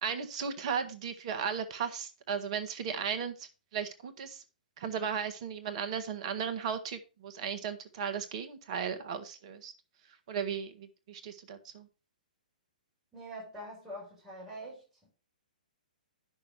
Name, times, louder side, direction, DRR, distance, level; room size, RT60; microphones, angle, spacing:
voice 1, 0.0-4.4 4.8-9.7 10.3-11.9, right 7 dB, 45° right, 1.6 m, -36 dB
voice 2, 13.1-14.8, right 1 dB, 5° right, 6.8 m, -44 dB
10.5 x 6.3 x 4.7 m
figure-of-eight pair, 120°, 5 cm